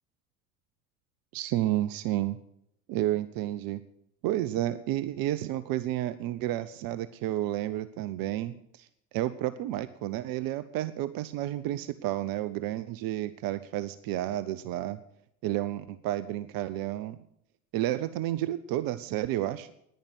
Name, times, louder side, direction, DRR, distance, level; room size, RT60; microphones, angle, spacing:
voice 1, 1.3-2.4 2.9-3.8 4.2-8.9 9.1-15.0 15.4-17.2 17.7-19.7, right 14 dB, 45° right, 15 dB, 0.7 m, -31 dB
10.5 x 10.5 x 7.9 m, 0.75 s
figure-of-eight pair, 65°, 47 cm